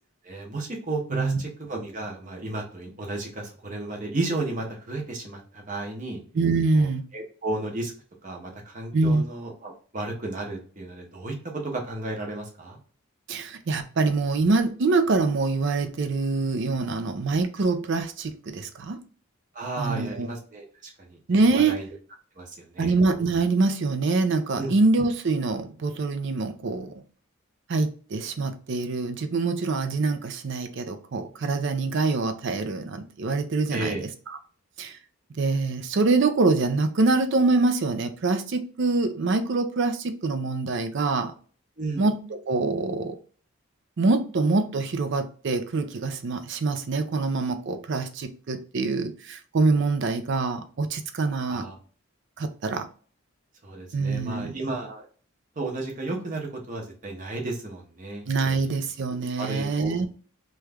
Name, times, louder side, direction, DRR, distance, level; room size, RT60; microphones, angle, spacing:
voice 1, 0.2-6.2 6.7-6.9 7.1-7.9 8.2-12.8 19.5-20.7 21.1-21.2 21.5-21.9 22.4-22.9 24.5-24.7 33.7-34.0 41.8-42.0 51.4-51.8 53.6-55.0 55.6-58.7 59.1-60.1, right 2 dB, 35° right, 1 dB, 0.8 m, -33 dB
voice 2, 1.1-1.4 6.3-7.0 8.9-9.2 13.3-19.0 19.8-20.3 21.3-21.8 22.8-26.9 27.7-34.1 34.8-35.0 35.3-41.3 42.0-43.2 44.0-51.7 52.4-52.9 53.9-54.5 58.3-60.1, right 3 dB, 55° right, 9 dB, 0.5 m, -25 dB
3.1 x 2.3 x 3.4 m, 0.41 s
head